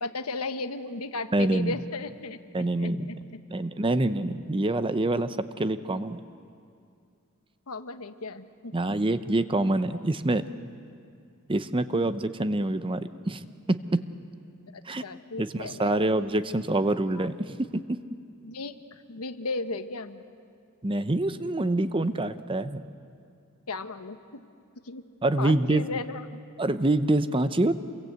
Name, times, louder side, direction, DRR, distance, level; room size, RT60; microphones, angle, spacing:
voice 1, 0.0-3.2 7.7-8.7 9.9-10.0 14.7-16.0 17.1-17.3 18.4-20.2 23.7-24.5 24.8-25.0 25.4-26.4, left 3 dB, 80° left, 9 dB, 1.2 m, -35 dB
voice 2, 1.3-1.7 2.5-3.1 3.5-6.2 8.7-10.4 11.5-14.0 14.9-15.0 15.4-18.0 20.8-22.8 25.2-25.8 26.6-27.7, right 2 dB, 25° right, 12 dB, 0.7 m, -26 dB
27.0 x 23.0 x 8.1 m, 2.4 s
head